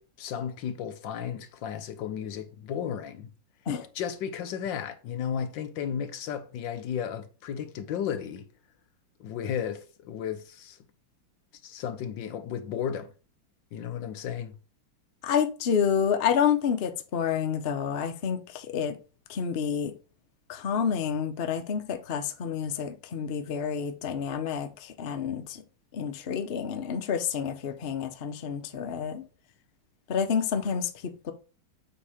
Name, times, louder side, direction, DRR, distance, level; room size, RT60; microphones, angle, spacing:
voice 1, 0.0-3.3 3.9-8.5 9.2-10.8 11.6-13.1 13.7-14.5, left 8 dB, 70° left, 1.3 m, -34 dB
voice 2, 15.2-19.0 19.3-19.9 20.5-25.6 25.9-29.2 30.1-31.3, left 7 dB, 85° left, 0.5 m, -29 dB
8.3 x 2.9 x 4.9 m
omnidirectional pair, 2.3 m